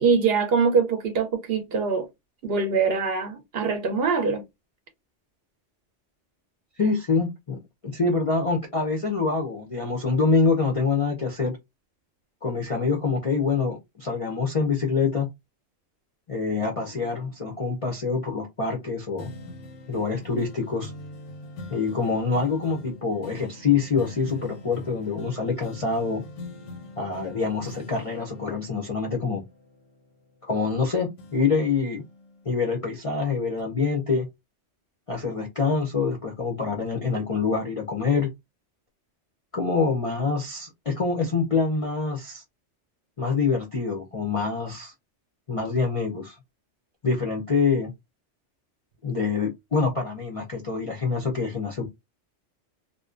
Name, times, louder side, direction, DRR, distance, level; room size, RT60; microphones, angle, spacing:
voice 1, 0.0-2.1 2.4-4.4, right 5 dB, 65° right, 0.7 m, -23 dB
voice 2, 6.8-11.6 12.4-15.3 16.3-19.3 19.9-20.9 21.7-26.2 27.0-29.4 30.4-32.0 32.5-34.3 35.1-38.3 39.5-42.4 43.2-44.9 45.5-46.4 47.0-47.9 49.0-51.9, left 4 dB, 50° left, 0.4 m, -25 dB
sound 1, 19.2-30.8 31.2-33.1 33.6-33.7, left 1 dB, 85° left, 1.0 m, -44 dB
2.5 x 2.1 x 2.4 m
omnidirectional pair, 1.2 m